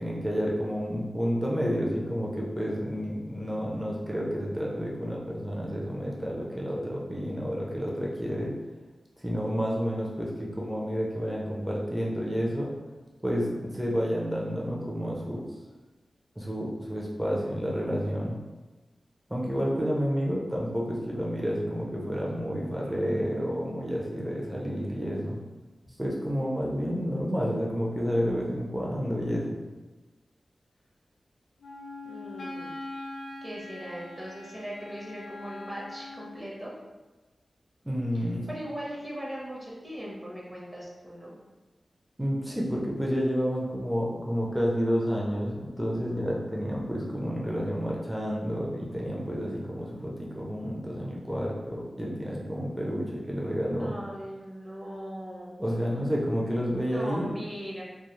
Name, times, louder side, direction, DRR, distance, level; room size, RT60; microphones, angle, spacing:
voice 1, 0.0-8.5 9.2-12.7 13.2-15.4 16.4-18.4 19.3-25.4 26.0-29.6 37.8-38.5 42.2-53.9 55.6-57.3, equal, 5° right, -4 dB, 0.5 m, -30 dB
Wind instrument woodwind instrument, 31.6-36.4, left 2 dB, 75° left, 0.5 m, -42 dB
voice 2, 32.0-33.0 33.4-36.8 38.1-41.3 53.8-55.6 56.7-57.8, equal, 30° right, -5 dB, 0.9 m, -39 dB
2.3 x 2.3 x 3.0 m, 1.2 s
cardioid pair, 55°, 0 cm